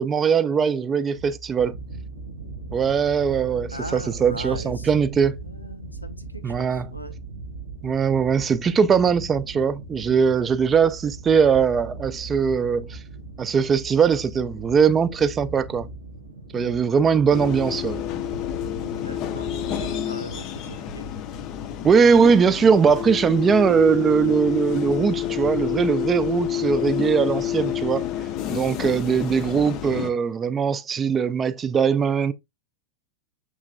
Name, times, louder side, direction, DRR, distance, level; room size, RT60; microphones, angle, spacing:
voice 1, 0.0-1.7 2.7-5.4 6.4-6.9 7.8-13.0 13.4-15.9 16.5-18.0 21.8-28.0 28.5-32.3, right 6 dB, 20° right, 0.4 m, -20 dB
sound 1, 1.1-20.0, right 3 dB, 85° right, 0.9 m, -38 dB
voice 2, 3.7-4.9 5.4-7.1 16.5-16.8 18.8-21.1, equal, 85° left, 0.6 m, -39 dB
sound 2, 17.3-30.1, left 11 dB, 40° left, 0.5 m, -29 dB
6.5 x 3.1 x 2.4 m
figure-of-eight pair, 90°, 0 cm